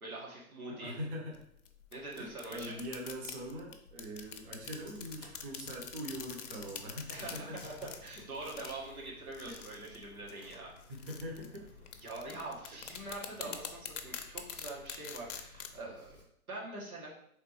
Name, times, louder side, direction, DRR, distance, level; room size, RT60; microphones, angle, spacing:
voice 1, 0.0-0.9 1.9-2.7 7.1-10.7 12.0-16.2 16.5-17.1, right 2 dB, 80° right, -4 dB, 1.5 m, -44 dB
voice 2, 0.7-1.4 2.1-7.6 10.9-11.7 13.4-13.5, equal, 40° right, -1 dB, 0.9 m, -42 dB
sound 1, 1.3-15.8, left 7 dB, 60° left, 0.6 m, -46 dB
Computer keyboard, 4.2-16.2, left 1 dB, 10° right, 0.8 m, -58 dB
4.0 x 3.3 x 3.1 m, 0.72 s
figure-of-eight pair, 115°, 43 cm